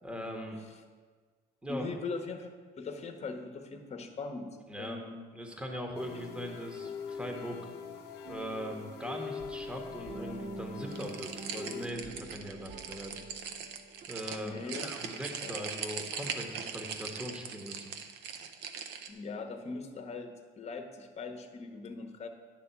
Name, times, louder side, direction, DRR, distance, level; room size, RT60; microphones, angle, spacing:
voice 1, 0.0-0.6 1.6-1.8 4.7-5.0 5.3-7.6 8.3-13.2 14.1-17.9, equal, 5° right, 2 dB, 1.0 m, -40 dB
voice 2, 1.7-2.5 2.8-4.5 4.8-5.2 6.1-6.2 14.4-14.9 15.4-15.6 19.1-22.3, left 4 dB, 40° left, 5 dB, 1.0 m, -40 dB
sound 1, 5.9-11.9, left 6 dB, 85° left, 0.7 m, -43 dB
sound 2, 8.2-14.1, right 3 dB, 50° right, 0.9 m, -47 dB
sound 3, 10.9-19.1, right 7 dB, 85° right, 0.7 m, -40 dB
10.0 x 3.5 x 6.9 m, 1.5 s
cardioid pair, 110°, 17 cm